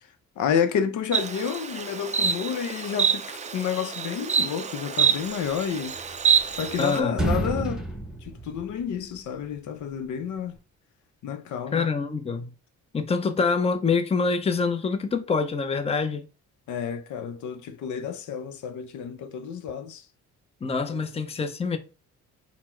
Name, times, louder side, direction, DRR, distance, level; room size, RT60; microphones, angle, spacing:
voice 1, 0.4-5.9 6.6-7.8 8.2-10.6 11.2-11.9 16.7-20.1 20.9-21.0, left 7 dB, 75° left, 0.7 m, -30 dB
Insect, 1.1-7.0, right 7 dB, 25° right, 0.4 m, -26 dB
sound 1, 5.9-6.8 7.1-9.2, right 1 dB, ahead, 0.9 m, -30 dB
voice 2, 6.8-7.2 11.7-12.5 12.9-16.2 20.6-21.8, left 4 dB, 20° left, 0.6 m, -25 dB
4.1 x 2.1 x 4.3 m
cardioid pair, 90°, 30 cm